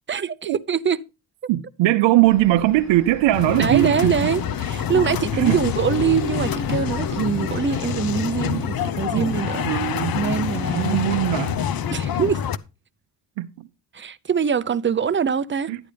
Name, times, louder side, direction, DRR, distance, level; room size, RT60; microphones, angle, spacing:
voice 1, 0.1-1.0 3.5-9.6 10.1-11.2 11.9-12.4 13.9-15.7, right 7 dB, 25° right, 0.6 m, -23 dB
voice 2, 1.5-4.1 5.3-5.6 8.5-8.7 9.2-9.3 9.6-10.2 10.7-11.6 13.4-13.7 15.7-15.8, right 15 dB, 90° right, 0.7 m, -20 dB
sound 1, 2.2-7.5, equal, 80° left, 6.0 m, -43 dB
sound 2, 3.3-12.6, left 8 dB, 55° left, 0.7 m, -26 dB
11.5 x 8.9 x 3.3 m
cardioid pair, 85°, 43 cm